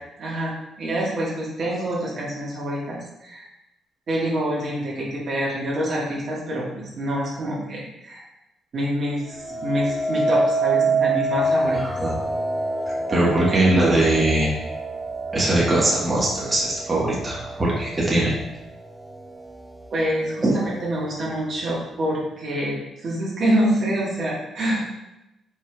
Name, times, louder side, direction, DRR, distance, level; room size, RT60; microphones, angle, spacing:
voice 1, 0.2-3.5 4.1-8.2 8.7-11.9 13.1-13.3 19.9-24.8, right 1 dB, 55° right, -5 dB, 1.4 m, -26 dB
sound 1, 9.3-18.5 19.0-19.5, right 2 dB, 5° right, 0.3 m, -26 dB
voice 2, 11.8-12.2 13.1-14.6 15.3-18.3 20.4-20.6, right 1 dB, 20° right, -6 dB, 1.2 m, -21 dB
4.6 x 4.3 x 2.2 m, 0.92 s
cardioid pair, 90°, 0 cm